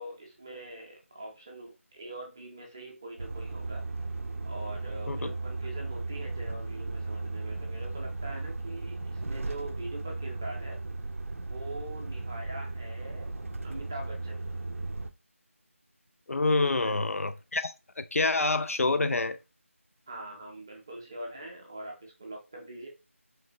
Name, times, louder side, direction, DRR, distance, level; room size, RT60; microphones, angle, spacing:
voice 1, 0.0-3.8 4.4-10.8 11.5-14.5 16.6-17.0 20.1-22.9, right 1 dB, 15° right, 0.5 m, -43 dB
Truck, 3.2-15.1, right 3 dB, 70° right, 0.5 m, -36 dB
voice 2, 16.3-19.4, left 3 dB, 80° left, 0.4 m, -27 dB
3.2 x 3.1 x 2.7 m
figure-of-eight pair, 170°, 8 cm